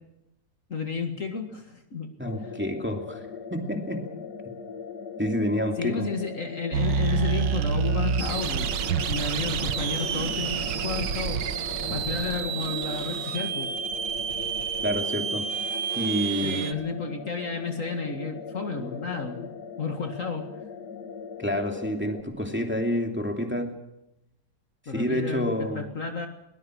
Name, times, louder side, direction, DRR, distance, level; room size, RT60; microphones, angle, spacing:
voice 1, 0.7-2.1 2.4-2.5 5.8-8.7 9.1-11.4 11.9-13.7 16.4-19.5 19.8-20.5 24.9-26.3, left 4 dB, 45° left, 4 dB, 2.2 m, -32 dB
sound 1, 2.2-22.2, left 6 dB, 65° left, 1.9 m, -40 dB
voice 2, 2.2-3.2 3.5-4.0 5.2-6.1 14.8-15.5 15.9-16.6 21.4-23.7 24.9-25.8, equal, 5° right, 3 dB, 2.6 m, -28 dB
sound 2, 6.7-16.7, right 7 dB, 85° right, 1.7 m, -28 dB
22.0 x 19.5 x 6.4 m, 0.87 s
omnidirectional pair, 1.9 m